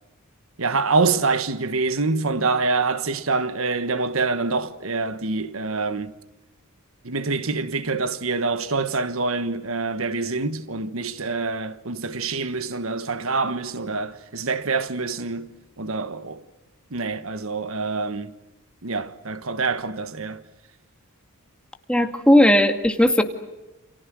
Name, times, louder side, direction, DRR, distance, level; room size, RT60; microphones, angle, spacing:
voice 1, 0.6-6.1 7.0-15.5 15.8-16.4 16.9-18.3 18.8-20.4, right 3 dB, 70° right, 1.4 m, -26 dB
voice 2, 21.9-23.2, left 1 dB, 5° left, 2.0 m, -16 dB
29.5 x 28.5 x 6.3 m
head